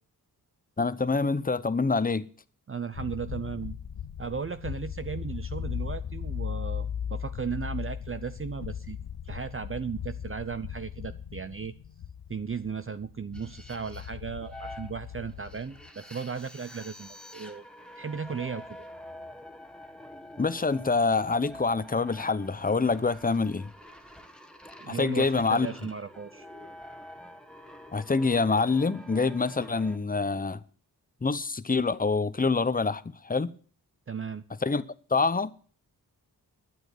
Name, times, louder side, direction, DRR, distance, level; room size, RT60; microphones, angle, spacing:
voice 1, 0.8-2.3 20.4-23.7 24.9-25.7 27.9-30.6 31.2-33.5 34.6-34.8 35.1-35.5, left 4 dB, 20° left, 0.9 m, -26 dB
voice 2, 2.7-3.8 4.2-9.0 9.2-11.7 12.3-17.6 18.0-18.8 24.8-26.5 34.1-34.4, right 6 dB, 35° right, 0.6 m, -36 dB
sound 1, 2.9-15.9, left 8 dB, 70° left, 1.0 m, -38 dB
sound 2, 13.3-30.0, left 1 dB, ahead, 1.5 m, -47 dB
12.0 x 8.9 x 8.2 m
cardioid pair, 75°, 39 cm